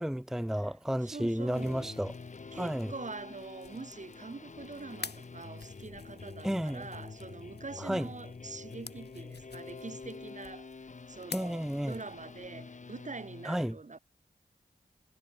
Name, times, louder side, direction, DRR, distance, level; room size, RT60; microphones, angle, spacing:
voice 1, 0.0-2.1 2.5-2.9 6.4-6.9 7.8-8.1 11.3-12.0 13.4-13.8, equal, 5° right, 0.6 m, -32 dB
voice 2, 1.0-1.9 2.5-10.7 11.1-14.0, right 3 dB, 45° right, 1.7 m, -44 dB
sound 1, 1.3-12.5, left 5 dB, 80° left, 3.6 m, -51 dB
sound 2, 1.5-13.5, left 4 dB, 45° left, 0.9 m, -47 dB
cardioid pair, 40°, 17 cm